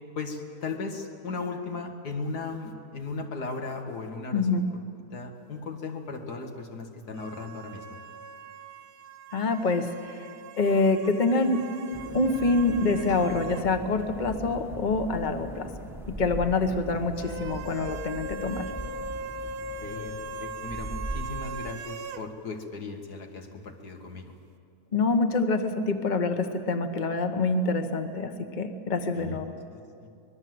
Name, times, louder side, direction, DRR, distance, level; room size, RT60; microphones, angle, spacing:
voice 1, 0.2-4.7 5.1-8.0 19.8-24.3 29.1-29.4 29.7-30.1, left 4 dB, 90° left, 3 dB, 2.5 m, -37 dB
voice 2, 4.3-4.6 9.3-10.3 10.6-11.6 12.1-15.7 16.1-18.6 24.9-29.5, left 3 dB, 30° left, 7 dB, 1.3 m, -26 dB
sound 1, 7.1-13.7 14.0-14.1 17.1-22.3, right 3 dB, 75° right, 1.4 m, -40 dB
sound 2, 11.9-21.7, right 1 dB, ahead, 1.1 m, -40 dB
24.5 x 21.0 x 7.9 m, 2.4 s
omnidirectional pair, 1.6 m